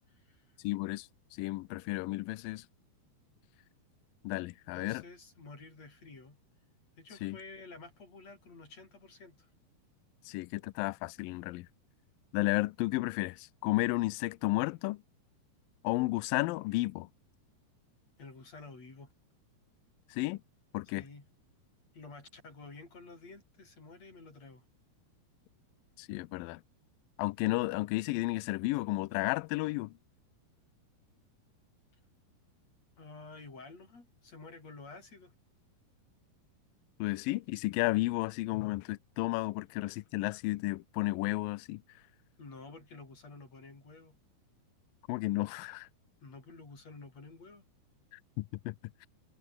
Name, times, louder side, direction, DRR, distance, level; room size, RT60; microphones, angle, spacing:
voice 1, 0.0-0.6 4.7-6.4 7.0-9.5 18.2-19.1 21.0-21.2 21.9-24.6 33.0-35.3 42.4-44.2 46.2-47.6, left 3 dB, 40° left, 8.2 m, -51 dB
voice 2, 0.6-2.7 4.2-5.0 7.2-7.4 10.3-11.7 12.3-15.0 15.8-17.1 20.1-20.4 20.7-21.0 26.0-26.6 27.2-29.9 37.0-41.8 45.1-45.9 48.4-48.8 49.0-49.1, left 21 dB, 90° left, 2.0 m, -32 dB
omnidirectional pair, 4.7 m